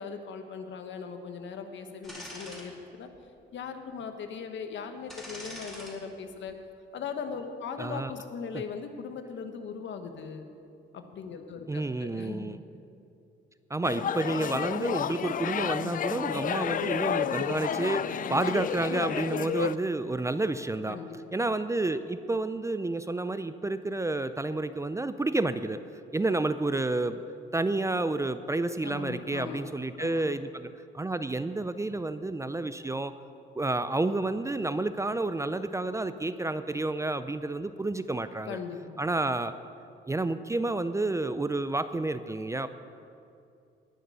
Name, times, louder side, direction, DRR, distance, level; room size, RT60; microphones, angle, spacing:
voice 1, 0.0-3.1 3.5-6.6 6.9-10.5 10.9-12.6 18.3-18.4 20.9-21.1 21.4-21.5 28.8-29.6 30.0-30.3 38.4-39.0, left 6 dB, 70° left, 6 dB, 1.3 m, -39 dB
sound 1, 2.0-2.6 3.1-3.2 5.1-5.9 6.3-6.5, equal, ahead, 4.0 m, -43 dB
voice 2, 7.8-8.1 8.5-8.6 11.7-12.6 13.7-21.0 21.3-25.8 26.1-27.2 27.5-33.1 33.6-38.6 39.0-39.5 40.1-42.7, right 2 dB, 15° right, 12 dB, 0.5 m, -30 dB
sound 2, 13.8-19.8, left 9 dB, 45° left, 0.4 m, -31 dB
19.0 x 6.4 x 6.8 m, 2.6 s
cardioid pair, 90°, 20 cm